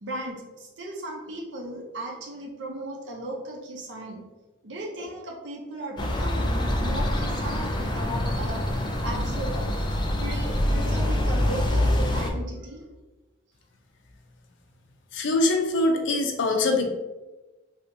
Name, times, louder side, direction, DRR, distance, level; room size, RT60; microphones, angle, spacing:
voice 1, 0.0-4.2 4.6-9.7 10.2-12.8, right 1 dB, 70° right, 0 dB, 0.7 m, -36 dB
sound 1, 6.0-12.3, left 1 dB, 25° left, 0.3 m, -25 dB
voice 2, 15.1-16.9, left 2 dB, 80° left, 3 dB, 0.5 m, -23 dB
3.2 x 2.8 x 2.6 m, 1.1 s
head